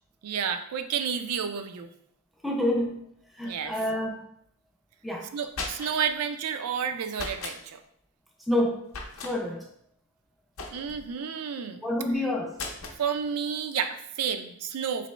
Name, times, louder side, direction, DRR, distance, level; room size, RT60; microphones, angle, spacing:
voice 1, 0.2-1.9 3.4-3.7 5.3-7.8 10.7-11.8 13.0-15.1, right 7 dB, 90° right, 8 dB, 0.4 m, -31 dB
voice 2, 2.4-3.1 3.4-4.2 5.0-5.3 8.5-8.9 9.2-9.7 11.8-12.6, left 1 dB, ahead, 0 dB, 0.3 m, -28 dB
sound 1, 5.5-6.1 7.1-7.6 8.9-9.3 10.6-11.1 12.5-13.0, left 3 dB, 70° left, 0.6 m, -37 dB
4.2 x 2.9 x 3.1 m, 0.70 s
head